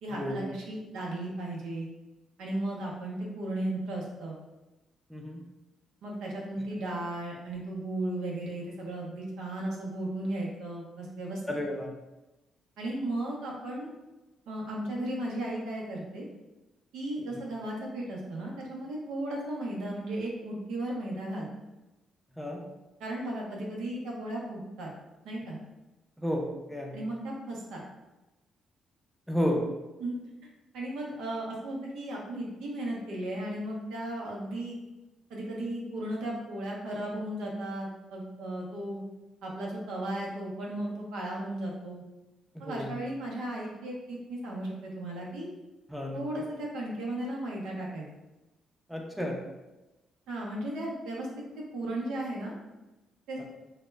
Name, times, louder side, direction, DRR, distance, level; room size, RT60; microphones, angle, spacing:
voice 1, 0.0-1.9 2.4-4.4 6.0-11.4 12.8-13.9 14.5-16.2 16.9-21.5 23.0-24.9 25.2-25.6 26.9-27.8 30.0-30.1 30.7-34.8 35.3-39.0 39.4-42.0 42.6-45.5 46.1-48.0 50.3-51.3 51.7-52.5 53.3-53.4, right 1 dB, 85° right, -2 dB, 0.6 m, -35 dB
voice 2, 11.5-11.9 22.4-22.6 26.2-27.0 29.3-29.6 42.5-42.9 45.9-46.2 48.9-49.4, left 1 dB, ahead, 0 dB, 0.4 m, -32 dB
2.0 x 2.0 x 3.3 m, 1.0 s
cardioid pair, 90°, 0 cm